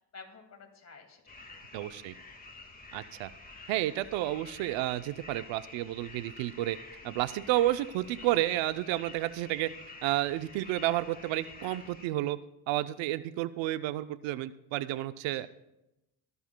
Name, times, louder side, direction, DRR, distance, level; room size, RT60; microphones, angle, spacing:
voice 1, 0.0-1.6 7.0-7.1 11.6-11.8 15.3-15.5, left 4 dB, 35° left, 4 dB, 2.2 m, -52 dB
sound 1, 1.3-12.1, left 3 dB, 20° left, 1.8 m, -49 dB
voice 2, 1.7-2.1 2.9-3.3 3.7-6.8 7.0-9.7 10.0-12.4 12.7-15.5, right 15 dB, 85° right, 14 dB, 0.6 m, -31 dB
22.0 x 12.5 x 2.2 m, 0.90 s
cardioid pair, 105°, 44 cm